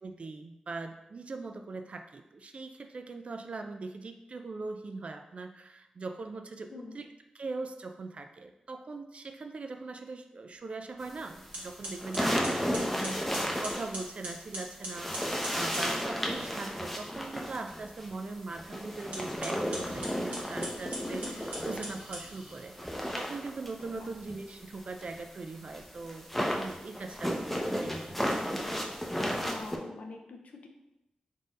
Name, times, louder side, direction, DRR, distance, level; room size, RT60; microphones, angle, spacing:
voice 1, 0.0-7.1 7.3-21.2 21.6-26.3 26.5-28.2, right 3 dB, 55° right, 6 dB, 0.4 m, -41 dB
voice 2, 6.7-7.0 13.0-13.1 21.0-21.5 23.9-24.1 29.4-30.7, left 3 dB, 70° left, 3 dB, 0.5 m, -45 dB
sound 1, 11.0-11.1 11.5-15.9 19.0-22.7, right 1 dB, 85° right, 1.3 m, -42 dB
sound 2, 11.3-14.5 14.9-22.2 22.5-29.8, equal, 5° left, 0.6 m, -34 dB
3.9 x 2.6 x 3.7 m, 0.92 s
cardioid pair, 60°, 2 cm